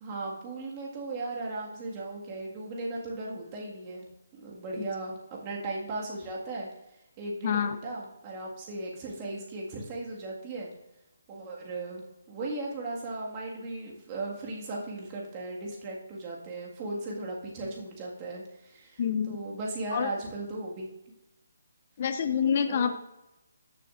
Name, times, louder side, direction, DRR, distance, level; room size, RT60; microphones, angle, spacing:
voice 1, 0.0-4.1 4.3-6.7 7.2-10.7 11.3-20.9 22.7-22.9, right 2 dB, 25° right, -2 dB, 1.8 m, -37 dB
voice 2, 7.4-7.8 19.0-19.4 19.9-20.1 22.0-22.9, left 7 dB, 35° left, 10 dB, 0.4 m, -27 dB
13.5 x 6.6 x 2.5 m, 0.93 s
hypercardioid pair, 165°, 0 cm